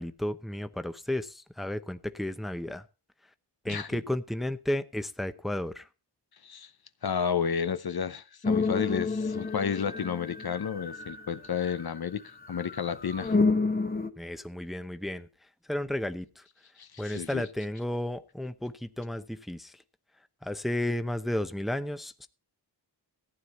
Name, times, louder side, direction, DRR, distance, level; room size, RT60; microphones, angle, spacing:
voice 1, 0.0-2.8 3.6-5.9 14.2-15.3 15.7-16.4 17.0-19.8 20.4-22.3, left 1 dB, ahead, 0.7 m, -33 dB
voice 2, 3.7-4.0 6.4-6.7 7.0-13.4 16.8-17.4, left 7 dB, 60° left, 0.8 m, -32 dB
sound 1, 8.4-12.0 12.4-14.1, left 3 dB, 20° left, 1.0 m, -29 dB
14.5 x 9.5 x 4.2 m
wide cardioid pair, 100°, 41 cm